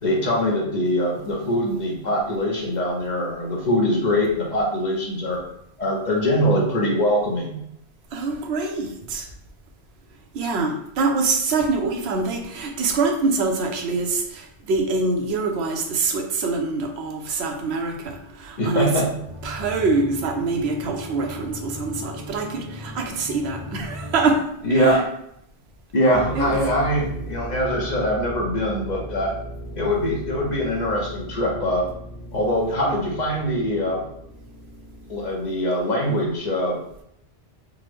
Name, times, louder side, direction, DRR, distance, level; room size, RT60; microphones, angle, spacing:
voice 1, 0.0-5.4 5.8-7.6 18.6-19.1 24.6-25.0 25.9-29.3 29.8-31.9 32.3-34.1 35.1-36.8, equal, 50° left, -1 dB, 0.7 m, -23 dB
voice 2, 8.1-9.3 10.3-18.9 19.4-24.4 24.8-25.0 26.4-26.6, right 3 dB, 80° right, 3 dB, 0.9 m, -24 dB
sound 1, 19.2-24.4, left 1 dB, 25° left, 1.3 m, -37 dB
sound 2, 26.1-35.6, right 1 dB, 85° left, 1.1 m, -37 dB
3.6 x 2.0 x 3.1 m, 0.75 s
omnidirectional pair, 1.1 m